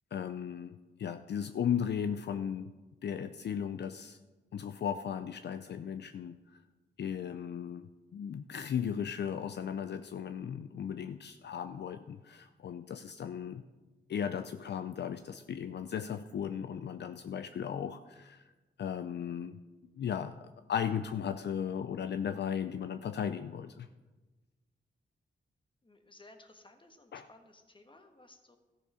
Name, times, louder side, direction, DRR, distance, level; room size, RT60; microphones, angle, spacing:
voice 1, 0.1-2.7 3.0-4.2 4.5-6.4 7.0-13.6 14.1-18.4 18.8-19.6 20.0-23.9 27.1-27.3, left 8 dB, 60° left, 11 dB, 0.4 m, -36 dB
voice 2, 25.8-28.6, left 2 dB, 25° left, 6 dB, 1.4 m, -58 dB
13.5 x 7.0 x 4.9 m, 1.2 s
cardioid pair, 70°, 19 cm